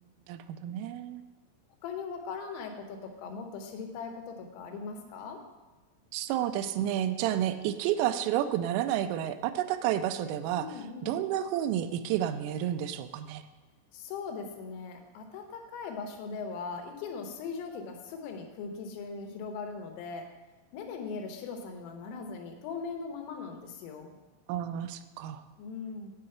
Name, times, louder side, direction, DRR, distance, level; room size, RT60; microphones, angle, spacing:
voice 1, 0.3-1.2 6.1-10.7 11.0-13.4 24.5-25.4, right 11 dB, 85° right, 10 dB, 3.1 m, -30 dB
voice 2, 1.8-5.4 10.5-11.2 13.9-20.3 20.7-24.1 25.6-26.1, left 5 dB, 85° left, 4 dB, 3.7 m, -39 dB
8.5 x 5.6 x 7.7 m, 1.2 s
omnidirectional pair, 5.8 m